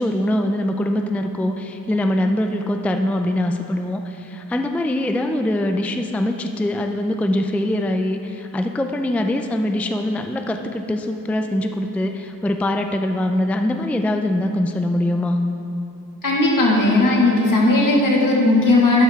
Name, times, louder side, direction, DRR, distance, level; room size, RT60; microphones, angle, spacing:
voice 1, 0.0-15.4, left 1 dB, 5° left, 5 dB, 0.3 m, -23 dB
voice 2, 16.2-19.0, left 2 dB, 65° left, -3 dB, 2.0 m, -16 dB
12.0 x 8.9 x 3.6 m, 2.9 s
wide cardioid pair, 120°, 34 cm